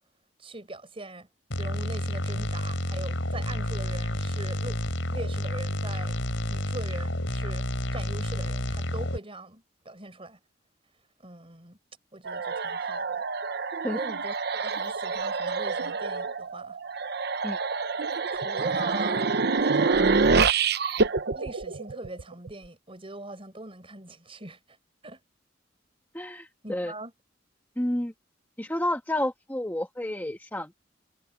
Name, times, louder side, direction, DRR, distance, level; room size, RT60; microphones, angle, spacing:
voice 1, 0.4-1.3 1.6-4.8 5.1-6.2 6.5-10.4 11.2-11.8 12.1-13.2 13.9-16.8 18.3-19.3 19.6-20.1 21.3-24.8 25.0-25.2 26.6-27.1, right 2 dB, 30° right, 5.1 m, -41 dB
sound 1, 1.5-9.2, left 1 dB, 75° left, 5.5 m, -30 dB
sound 2, 12.3-22.5, right 4 dB, 55° right, 0.8 m, -27 dB
voice 2, 26.1-26.9 27.8-28.1 28.6-30.8, left 1 dB, 10° left, 1.3 m, -30 dB
head